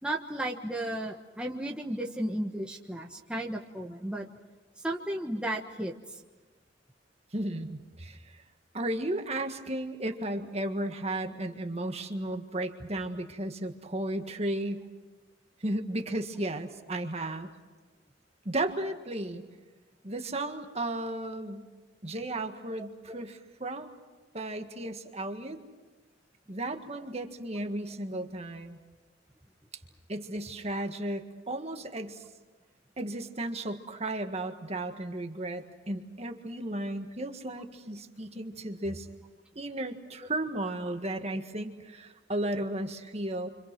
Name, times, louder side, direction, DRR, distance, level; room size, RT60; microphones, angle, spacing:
voice 1, 0.0-4.3 4.8-6.2 23.1-23.2, right 1 dB, 5° right, -1 dB, 1.4 m, -34 dB
voice 2, 7.3-8.4 8.7-14.8 15.6-17.5 18.4-19.4 20.0-21.7 22.0-23.9 24.3-25.6 26.5-28.8 30.1-32.2 33.0-39.1 39.5-43.5, right 1 dB, 35° right, 5 dB, 1.7 m, -34 dB
29.5 x 26.0 x 6.2 m, 1.3 s
head